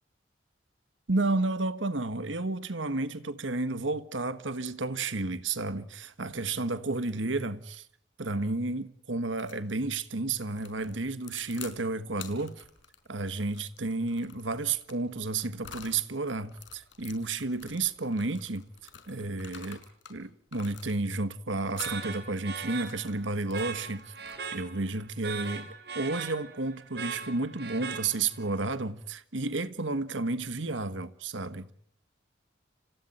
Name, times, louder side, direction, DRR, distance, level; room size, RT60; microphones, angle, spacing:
voice 1, 1.1-7.9 8.2-12.6 13.1-18.6 19.1-19.8 20.1-24.1 24.5-31.7, right 3 dB, 85° right, 1.5 m, -32 dB
sound 1, 9.3-9.6 10.5-11.8 12.1-16.0 16.5-20.2 20.5-21.2 21.7-22.1 22.6-24.7, left 7 dB, 80° left, 5.1 m, -49 dB
sound 2, 21.8-28.5, right 5 dB, 55° right, 4.1 m, -40 dB
30.0 x 27.5 x 4.3 m
head